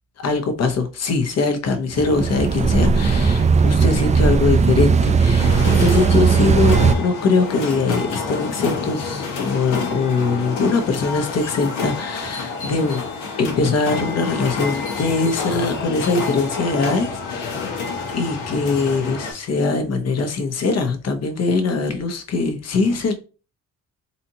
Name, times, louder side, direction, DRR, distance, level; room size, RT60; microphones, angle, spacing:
voice 1, 0.2-13.0 13.4-17.7 18.1-23.1, left 3 dB, 55° left, 1.0 m, -22 dB
sound 1, 1.9-6.9, right 5 dB, 25° right, 0.4 m, -17 dB
sound 2, 5.4-19.3, left 4 dB, 90° left, 1.2 m, -28 dB
4.1 x 2.8 x 2.8 m
cardioid pair, 90°, 30 cm